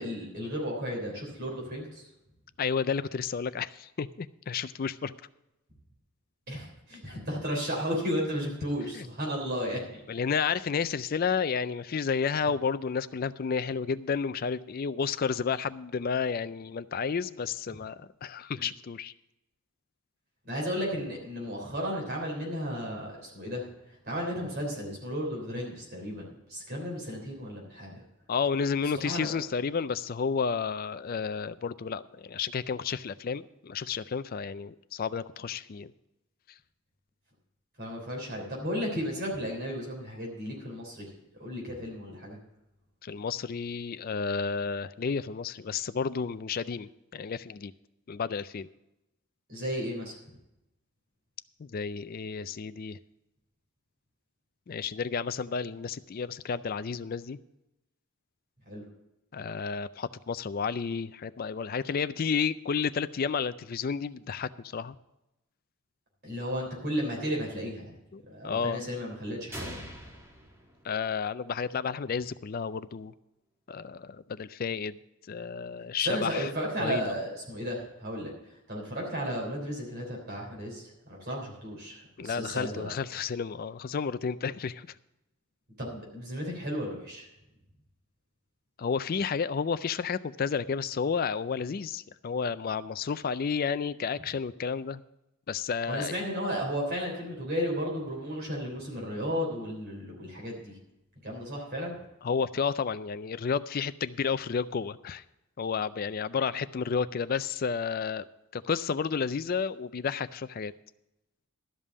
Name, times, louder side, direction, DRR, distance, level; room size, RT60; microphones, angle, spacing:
voice 1, 0.0-2.0 6.5-10.0 18.6-18.7 20.5-28.0 29.0-29.3 37.8-41.1 41.4-42.4 49.5-50.2 58.7-58.8 66.2-67.9 68.3-69.8 76.0-78.3 78.7-82.9 85.8-87.3 95.9-100.7 101.2-101.9, equal, 45° right, -2 dB, 3.4 m, -34 dB
voice 2, 2.6-5.2 8.9-9.1 10.1-19.1 28.3-35.9 43.0-47.7 48.1-48.7 51.6-53.0 54.7-57.4 59.3-64.9 68.1-68.8 70.8-73.1 73.7-75.0 75.3-76.5 76.8-77.1 82.2-84.9 88.8-95.0 95.5-96.1 102.2-105.2 105.6-108.2 108.5-110.7, left 6 dB, 40° left, 15 dB, 0.4 m, -31 dB
sound 1, 69.5-71.4, equal, 10° right, 1.6 m, -43 dB
12.5 x 5.4 x 8.4 m, 0.90 s
head